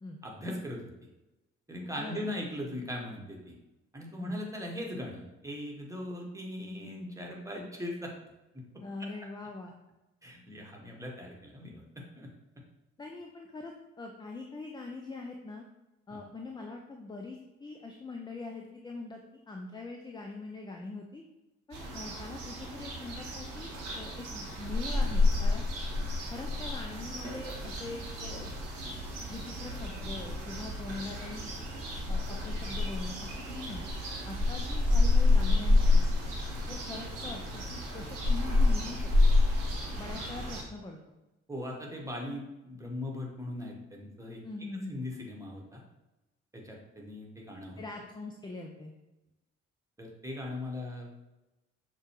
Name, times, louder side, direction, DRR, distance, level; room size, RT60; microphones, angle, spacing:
voice 1, 0.2-0.8 1.7-3.5 3.9-8.1 8.5-8.8 10.2-12.3 16.1-16.2 41.5-44.4 44.9-45.8 46.5-47.8 50.0-51.1, left 1 dB, 10° right, -1 dB, 1.2 m, -39 dB
voice 2, 8.8-9.7 13.0-15.6 16.1-21.2 21.7-25.7 26.3-28.5 29.3-31.5 32.1-33.8 34.2-36.1 36.7-39.1 40.0-41.0 44.4-45.0 47.8-48.9, left 3 dB, 15° left, 2 dB, 0.5 m, -42 dB
sound 1, 21.7-40.6, left 2 dB, 85° right, 0.8 m, -29 dB
6.5 x 2.3 x 3.0 m, 1.0 s
figure-of-eight pair, 40°, 35 cm